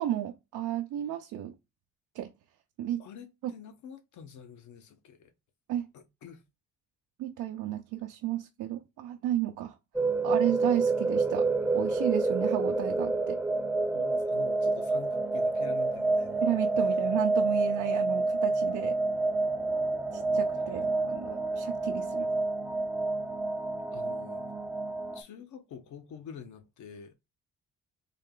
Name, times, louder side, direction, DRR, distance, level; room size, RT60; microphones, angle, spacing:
voice 1, 0.0-1.5 2.1-2.3 2.8-3.0 5.7-5.9 7.2-9.7 10.2-11.5 11.7-13.4 16.4-19.0 20.1-22.3, right 12 dB, 90° right, 0.6 m, -33 dB
voice 2, 3.0-5.3 5.9-6.4 13.9-16.5 23.9-24.5 25.1-27.1, left 7 dB, 75° left, 0.9 m, -47 dB
sound 1, 9.9-25.2, right 3 dB, 5° right, 0.6 m, -28 dB
3.7 x 2.3 x 3.7 m
cardioid pair, 90°, 30 cm